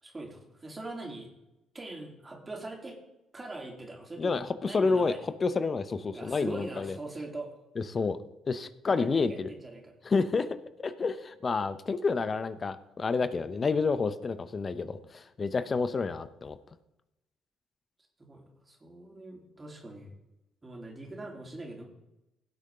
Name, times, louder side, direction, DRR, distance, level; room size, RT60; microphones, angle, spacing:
voice 1, 0.0-1.3 1.7-3.0 3.3-5.3 6.1-7.5 8.9-9.9 15.5-15.7 18.2-20.1 20.6-21.9, right 2 dB, 25° right, 0 dB, 3.5 m, -42 dB
voice 2, 4.2-6.9 7.8-8.2 8.5-9.5 10.0-10.5 10.8-16.6, left 4 dB, 40° left, 13 dB, 0.8 m, -29 dB
17.5 x 6.6 x 3.8 m, 0.92 s
hypercardioid pair, 50°, 0 cm